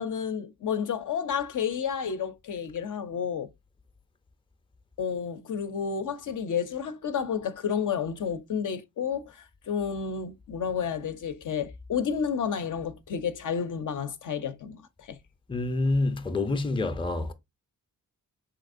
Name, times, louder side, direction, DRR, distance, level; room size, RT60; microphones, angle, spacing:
voice 1, 0.0-3.5 5.0-15.2, left 7 dB, 60° left, 0.5 m, -31 dB
voice 2, 15.5-17.3, left 2 dB, 15° left, 0.5 m, -27 dB
3.4 x 2.9 x 2.4 m
cardioid pair, 65°, 35 cm